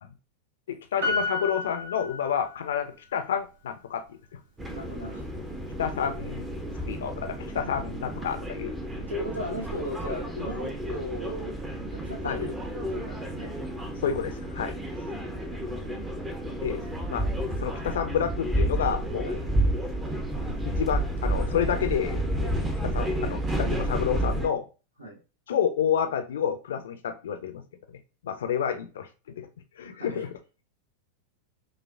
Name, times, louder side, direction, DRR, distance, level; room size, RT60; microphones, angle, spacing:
voice 1, 0.7-4.4 5.8-6.5 6.9-8.7 12.2-12.4 14.0-14.8 16.6-17.3 17.6-19.4 20.5-22.6 22.8-24.7 25.5-27.6 27.9-29.1 29.4-29.5 29.8-30.3, left 8 dB, 60° left, 0.4 m, -29 dB
Piano, 1.0-2.8 3.1-3.2, left 3 dB, 70° right, 1.2 m, -31 dB
sound 1, 4.6-24.5, right 1 dB, 15° right, 0.6 m, -31 dB
voice 2, 4.7-5.2 7.6-7.7 9.1-11.6 11.9-13.5 15.2-16.0 19.2-19.4 25.0-25.2 29.8-30.3, left 1 dB, 85° right, 1.0 m, -37 dB
5.4 x 2.0 x 2.4 m
figure-of-eight pair, 90°, 0 cm